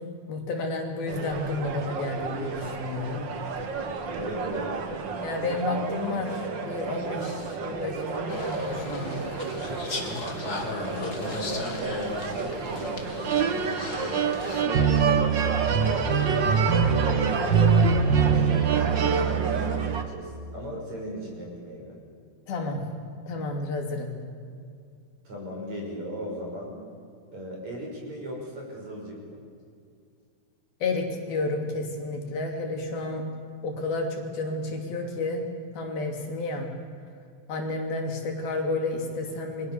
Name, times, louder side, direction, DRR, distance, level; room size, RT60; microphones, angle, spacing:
voice 1, 0.0-3.3 3.6-3.7 5.2-9.3 22.5-22.8 23.3-24.1 30.8-33.2 33.6-35.5 35.7-36.7 37.5-39.7, left 2 dB, 70° left, 2 dB, 4.6 m, -31 dB
sound 1, 1.1-20.0, right 6 dB, 65° right, 1.1 m, -26 dB
voice 2, 4.1-4.7 10.6-15.6 16.2-21.9 25.3-26.8 27.3-29.4, equal, 45° right, -1 dB, 7.1 m, -37 dB
sound 2, 8.3-14.6, left 3 dB, 30° left, 2.2 m, -37 dB
29.0 x 23.5 x 7.0 m, 2.3 s
omnidirectional pair, 4.6 m